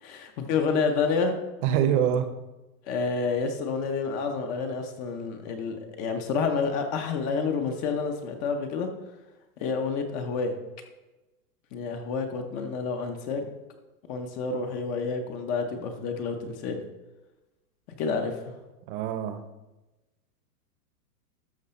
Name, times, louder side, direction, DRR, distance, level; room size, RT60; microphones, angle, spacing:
voice 1, 0.0-1.3 2.9-8.9 9.6-10.5 11.7-13.4 14.1-16.8 18.0-18.5, left 5 dB, 20° left, 6 dB, 0.5 m, -29 dB
voice 2, 1.6-2.3 18.9-19.4, right 9 dB, 30° right, 9 dB, 0.8 m, -24 dB
12.5 x 5.9 x 4.2 m, 1.1 s
hypercardioid pair, 150°, 47 cm